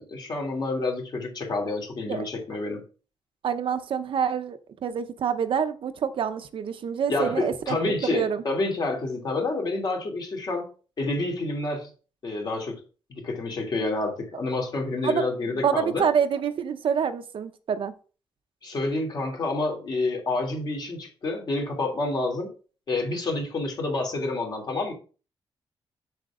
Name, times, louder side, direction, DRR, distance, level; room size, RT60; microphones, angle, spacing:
voice 1, 0.0-2.8 7.1-10.7 11.0-11.9 12.2-12.8 13.1-16.0 18.6-22.5 22.9-24.9, left 2 dB, 45° left, 1 dB, 2.9 m, -28 dB
voice 2, 3.4-7.8 8.1-8.4 15.0-15.3 15.6-17.9, right 7 dB, 60° right, 9 dB, 0.8 m, -27 dB
7.8 x 7.2 x 3.7 m, 0.36 s
wide cardioid pair, 160°, 10 cm